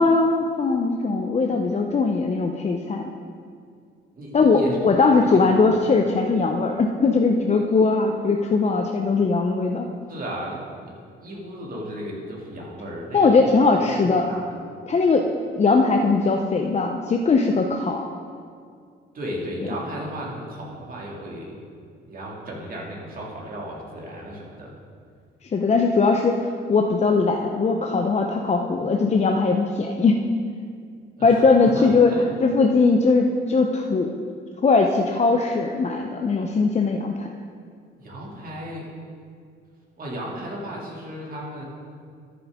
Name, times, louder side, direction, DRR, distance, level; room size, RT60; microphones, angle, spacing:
voice 1, 0.0-3.1 4.3-9.9 13.1-14.3 14.9-15.3 15.6-18.1 25.5-30.2 31.2-32.1 32.4-34.2 34.6-37.3, left 4 dB, 35° left, 3 dB, 0.6 m, -20 dB
voice 2, 4.1-4.8 5.2-5.7 10.1-10.6 10.9-14.5 19.1-21.5 22.0-24.7 31.2-32.2 32.7-32.8 38.0-38.9 40.0-41.6, equal, 45° right, -3 dB, 2.5 m, -35 dB
13.0 x 7.2 x 3.6 m, 2.2 s
cardioid pair, 90°, 20 cm